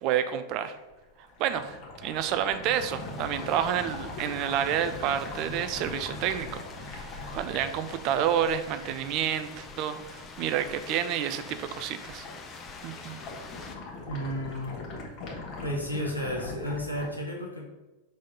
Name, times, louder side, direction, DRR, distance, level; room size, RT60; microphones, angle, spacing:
voice 1, 0.0-0.8 1.4-1.7 2.0-12.3 12.8-13.2, right 9 dB, 40° right, 11 dB, 0.5 m, -29 dB
sound 1, 0.6-11.0 11.3-11.8 12.1-17.1, left 3 dB, 40° left, 1.6 m, -41 dB
sound 2, 2.7-13.8, left 4 dB, 25° left, 0.8 m, -46 dB
voice 2, 14.1-14.8 15.6-17.6, equal, 85° left, -2 dB, 1.5 m, -32 dB
4.9 x 4.0 x 5.4 m, 1.1 s
figure-of-eight pair, 90°, 0 cm